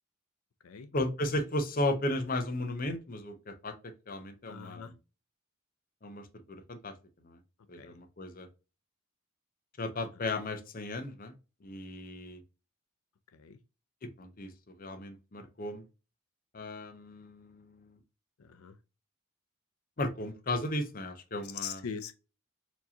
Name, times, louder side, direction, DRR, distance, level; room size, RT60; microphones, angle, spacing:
voice 1, 0.9-3.7 4.1-5.0 6.0-6.9 7.2-7.4 7.7-8.5 9.8-11.3 11.6-12.4 14.2-14.5 14.8-15.8 16.5-18.0 20.0-21.8, left 1 dB, 40° left, 0.7 m, -35 dB
voice 2, 4.5-4.9 7.8-7.9 13.3-13.6 18.4-18.7 21.6-22.1, left 7 dB, 90° left, 0.5 m, -41 dB
4.4 x 2.8 x 2.7 m
head